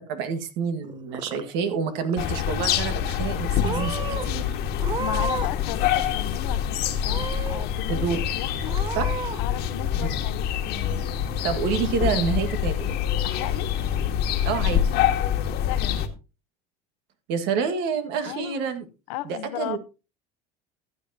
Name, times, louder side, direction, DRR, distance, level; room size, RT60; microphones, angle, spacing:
voice 1, 0.1-4.6 7.9-8.2 9.0-9.1 10.1-10.2 11.4-13.0 14.4-14.8 17.3-18.8 19.3-19.8, right 6 dB, 70° right, 1.8 m, -28 dB
Purr / Meow, 0.8-1.7 2.0-2.6 3.2-3.4 3.6-4.2 4.8-5.6 5.9-6.6 7.0-7.6 8.1-8.2 8.7-9.4, right 4 dB, 25° right, 0.9 m, -33 dB
sound 1, 2.2-16.1, left 9 dB, 60° left, 1.5 m, -26 dB
voice 2, 5.0-8.1 8.3-8.8 9.4-11.1 13.2-13.7 15.7-16.1 18.2-18.7 19.1-19.8, left 15 dB, 80° left, 0.9 m, -35 dB
15.0 x 8.4 x 2.9 m
supercardioid pair, 100°, 19 cm